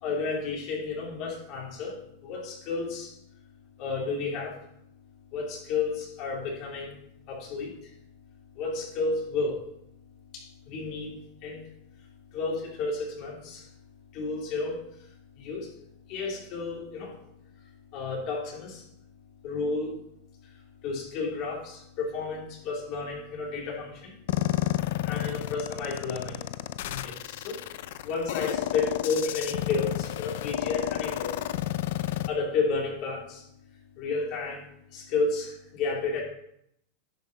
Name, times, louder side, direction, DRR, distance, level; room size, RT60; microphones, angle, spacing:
voice 1, 0.0-3.2 3.8-4.5 5.3-6.9 7.3-7.7 8.5-9.6 10.3-11.1 11.4-11.6 12.3-13.7 14.1-14.8 15.4-15.7 16.1-17.2 17.9-18.8 19.4-20.0 20.8-24.1 24.8-26.5 26.8-27.6 28.0-31.4 32.2-33.4 34.0-36.2, left 4 dB, 50° left, -1 dB, 3.4 m, -32 dB
sound 1, 24.3-32.3, left 14 dB, 70° left, 0.5 m, -31 dB
10.5 x 5.7 x 5.4 m, 0.73 s
supercardioid pair, 125°, 0 cm